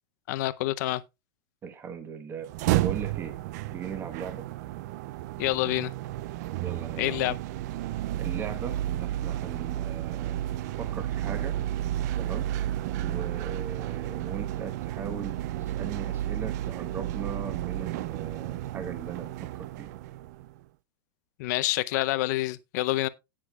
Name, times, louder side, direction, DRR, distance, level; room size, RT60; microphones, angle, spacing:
voice 1, 0.3-1.0 5.4-5.9 7.0-7.3 21.4-23.1, left 17 dB, 55° left, 0.6 m, -27 dB
voice 2, 1.6-2.5 2.8-3.4 3.7-4.5 6.6-7.2 8.2-10.4 10.7-11.6 12.2-12.5 13.0-19.9, right 6 dB, 20° right, 1.2 m, -39 dB
sound 1, 2.4-20.6, right 13 dB, 55° right, 0.4 m, -32 dB
17.5 x 6.5 x 2.3 m
supercardioid pair, 160°, 11 cm